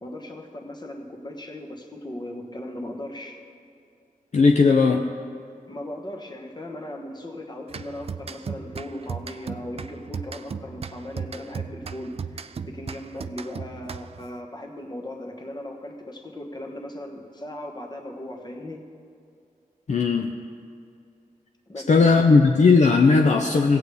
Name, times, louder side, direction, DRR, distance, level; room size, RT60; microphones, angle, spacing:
voice 1, 0.0-3.4 5.7-18.8 21.7-22.4, left 1 dB, 30° left, 2 dB, 1.2 m, -37 dB
voice 2, 4.3-5.1 19.9-20.3 21.9-23.8, left 4 dB, 55° left, 3 dB, 0.5 m, -17 dB
sound 1, 7.7-14.3, right 6 dB, 45° right, 0.3 m, -36 dB
17.0 x 8.2 x 3.4 m, 2.4 s
wide cardioid pair, 85°, 15 cm